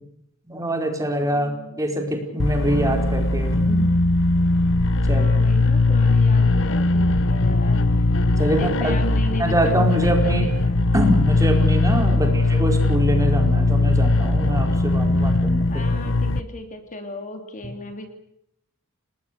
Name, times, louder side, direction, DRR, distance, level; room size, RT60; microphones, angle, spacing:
voice 1, 0.5-1.5 1.8-3.9 5.1-5.3 8.4-9.0 9.4-10.5 10.9-15.9, right 1 dB, 15° right, 3 dB, 4.8 m, -24 dB
voice 2, 1.2-1.8 5.1-7.8 8.5-10.8 12.1-12.4 15.7-18.1, left 1 dB, 40° left, 6 dB, 3.0 m, -36 dB
sound 1, 2.4-16.4, left 2 dB, 65° left, 1.2 m, -19 dB
29.5 x 20.0 x 6.8 m, 0.76 s
head